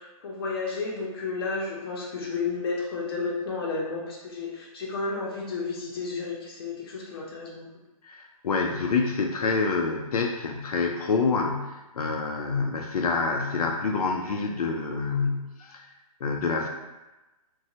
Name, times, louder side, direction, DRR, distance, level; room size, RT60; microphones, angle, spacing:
voice 1, 0.0-7.7, left 4 dB, 40° left, -3 dB, 0.7 m, -32 dB
voice 2, 8.0-15.9 16.2-16.7, left 4 dB, 90° left, 2 dB, 0.4 m, -27 dB
3.0 x 2.2 x 2.7 m, 1.1 s
hypercardioid pair, 165°, 19 cm